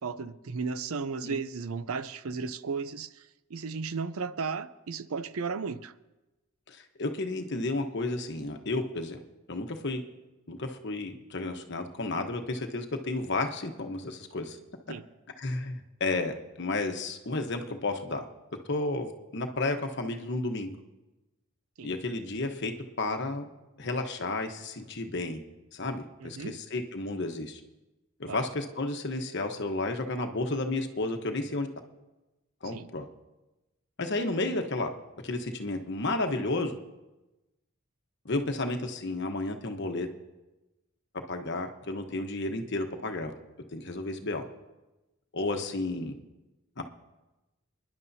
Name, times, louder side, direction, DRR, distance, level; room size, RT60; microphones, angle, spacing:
voice 1, 0.0-5.9 14.9-15.1 21.8-21.9 26.2-26.6 28.3-28.4 32.6-32.9 45.5-45.6, right 5 dB, 80° right, 13 dB, 0.6 m, -35 dB
voice 2, 6.7-9.2 9.5-10.0 10.5-14.6 15.4-18.2 18.7-20.7 21.8-22.7 23.0-23.5 23.8-25.4 25.7-27.6 28.2-31.7 32.6-33.1 34.0-34.9 35.2-36.8 38.2-40.1 41.3-43.3 43.7-44.4 45.3-46.2 46.8-46.9, left 2 dB, 55° left, 5 dB, 1.1 m, -32 dB
28.0 x 10.5 x 2.8 m, 1.0 s
head